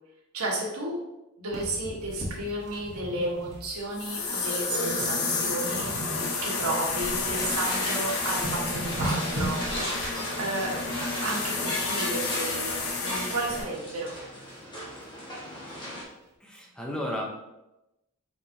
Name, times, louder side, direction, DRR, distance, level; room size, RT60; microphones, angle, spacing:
voice 1, 0.3-1.0 1.4-6.1 6.4-9.6 10.4-10.7 11.2-14.2, right 2 dB, 75° right, -3 dB, 1.3 m, -32 dB
sound 1, 1.5-4.4 4.9-5.2 5.5-7.4 7.9-8.0 8.2-10.1 11.9-12.5 12.9-14.3 14.8-14.9 15.1-15.2 15.7-15.8, right 1 dB, 50° right, 1.1 m, -37 dB
sound 2, 2.5-13.7, left 3 dB, 70° left, 0.8 m, -31 dB
sound 3, 7.3-16.0, left 1 dB, 20° left, 1.2 m, -36 dB
voice 2, 16.4-17.3, left 1 dB, 5° left, -1 dB, 0.7 m, -33 dB
4.8 x 4.0 x 2.7 m, 0.94 s
head